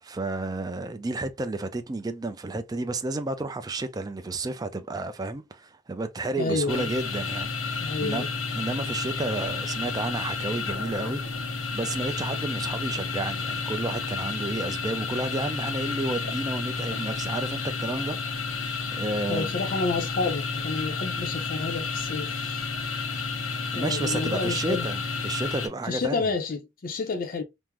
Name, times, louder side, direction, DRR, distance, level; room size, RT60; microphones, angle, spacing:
voice 1, 0.0-8.2 8.5-11.2 11.7-18.4 18.9-19.5 23.7-26.3, right 2 dB, 20° right, 0.3 m, -31 dB
voice 2, 6.4-6.9 7.8-8.3 19.3-22.6 23.7-24.9 25.9-27.4, left 4 dB, 45° left, 0.5 m, -30 dB
sound 1, 6.7-25.7, left 4 dB, 80° left, 1.0 m, -31 dB
3.5 x 2.0 x 2.9 m
head